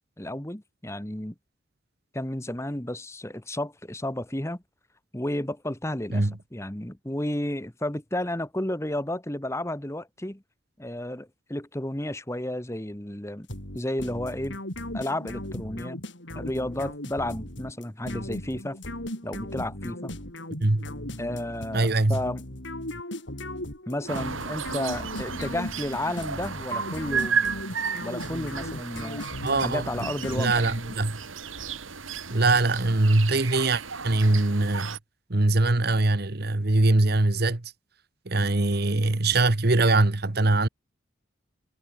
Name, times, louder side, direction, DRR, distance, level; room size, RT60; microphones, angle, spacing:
voice 1, 0.2-1.3 2.1-4.6 5.1-10.4 10.8-13.5 13.7-14.6 14.9-16.0 16.3-18.8 19.2-20.1 21.2-22.6 23.9-27.5 28.0-29.2 29.6-30.5, left 1 dB, 15° left, 1.4 m, -32 dB
sound 1, 13.5-31.0, left 1 dB, 65° left, 5.5 m, -37 dB
voice 2, 20.6-20.9 21.7-22.2 29.4-30.1 30.4-31.2 32.3-35.0 35.3-37.7 38.2-40.7, right 2 dB, 50° right, 1.3 m, -22 dB
sound 2, 24.1-35.0, right 6 dB, 90° right, 2.9 m, -33 dB
head